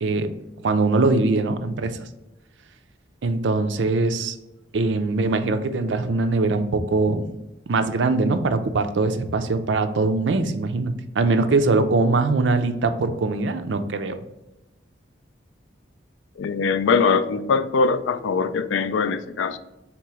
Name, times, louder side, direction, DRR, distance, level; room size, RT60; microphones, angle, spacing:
voice 1, 0.6-2.0 3.2-4.4 4.7-7.3 7.7-14.2, right 3 dB, 80° right, 9 dB, 0.5 m, -22 dB
voice 2, 16.4-19.6, left 5 dB, 90° left, 13 dB, 0.3 m, -22 dB
3.6 x 3.0 x 4.7 m, 0.91 s
head